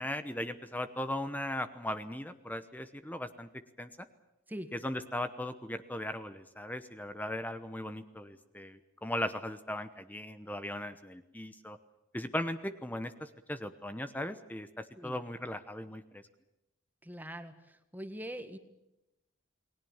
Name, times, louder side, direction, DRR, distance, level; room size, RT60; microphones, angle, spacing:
voice 1, 0.0-3.5 3.8-3.9 4.7-11.8 12.1-16.2, left 1 dB, 10° left, 10 dB, 1.0 m, -38 dB
voice 2, 17.0-18.6, equal, 10° right, 8 dB, 1.8 m, -43 dB
29.0 x 21.0 x 7.3 m, 0.91 s
head